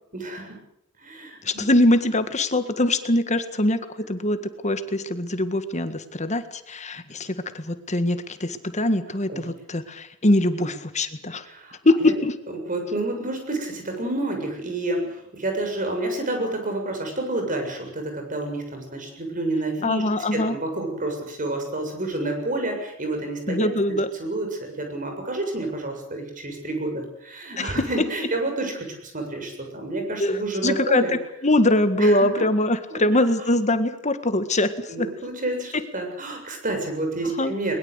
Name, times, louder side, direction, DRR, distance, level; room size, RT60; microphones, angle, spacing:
voice 1, 0.1-0.5 1.0-1.4 9.3-9.4 10.6-10.7 11.4-11.7 12.0-12.1 12.7-23.7 24.2-24.5 24.8-31.1 32.0-32.3 32.9-33.0 34.9-37.8, right 2 dB, 40° right, 4 dB, 7.2 m, -29 dB
voice 2, 1.4-11.5 11.8-12.3 19.8-20.6 23.5-24.1 27.6-27.7 30.2-31.0 31.4-35.1 37.4-37.5, left 1 dB, 35° left, 10 dB, 1.8 m, -22 dB
21.5 x 21.5 x 8.2 m, 0.77 s
head